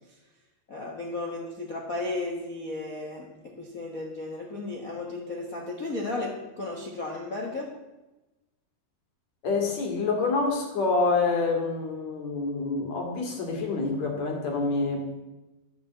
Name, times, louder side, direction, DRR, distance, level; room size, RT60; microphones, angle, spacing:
voice 1, 0.7-3.3 3.6-7.7, left 2 dB, 90° left, -1 dB, 0.7 m, -34 dB
voice 2, 9.4-15.2, left 3 dB, 50° left, 2 dB, 2.9 m, -27 dB
13.0 x 7.2 x 7.9 m, 1.0 s
omnidirectional pair, 4.3 m